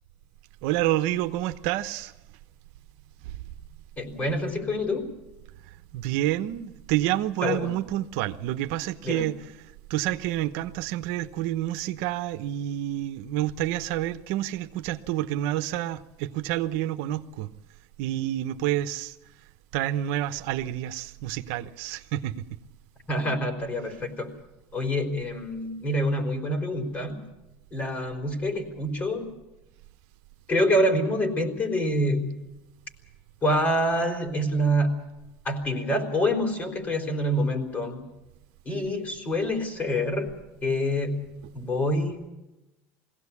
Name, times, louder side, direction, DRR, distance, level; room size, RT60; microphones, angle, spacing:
voice 1, 0.6-2.1 5.9-9.4 9.9-17.5 18.0-19.1 19.7-22.4, right 13 dB, 75° right, 0.9 m, -28 dB
voice 2, 4.0-5.1 7.4-7.7 9.0-9.3 23.1-24.3 24.7-27.2 27.7-29.3 30.5-32.4 33.4-34.9 35.4-38.0 38.7-40.3 40.6-42.3, equal, 25° left, 4.0 m, -26 dB
22.0 x 16.5 x 8.5 m
supercardioid pair, 125°, 6 cm